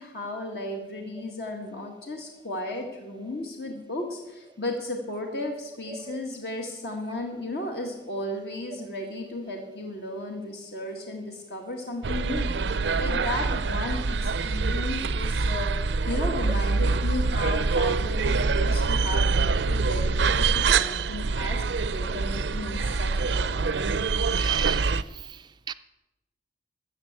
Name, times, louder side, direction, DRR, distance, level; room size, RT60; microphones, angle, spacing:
voice 1, 0.0-23.9, left 1 dB, 60° left, 1.8 m, -35 dB
voice 2, 5.9-6.2 24.4-25.7, right 6 dB, 25° right, 0.3 m, -37 dB
sound 1, 12.0-25.0, right 4 dB, 80° right, 0.5 m, -25 dB
13.5 x 7.0 x 8.8 m
head